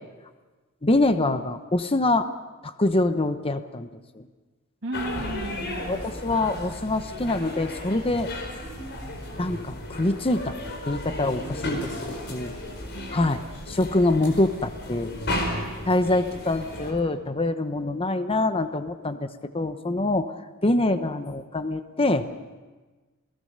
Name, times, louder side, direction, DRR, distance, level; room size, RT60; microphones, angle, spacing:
voice 1, 0.8-2.3 2.6-3.9 4.2-4.3 5.6-8.3 9.4-10.6 10.9-12.5 13.1-15.1 15.9-19.3 19.5-20.3 20.6-22.3, left 2 dB, 25° left, 9 dB, 0.9 m, -25 dB
voice 2, 4.8-6.0 12.9-13.3, right 1 dB, 60° right, -3 dB, 2.5 m, -35 dB
sound 1, 4.9-16.9, left 1 dB, 55° left, 4.5 m, -34 dB
28.0 x 18.0 x 6.7 m, 1.3 s
head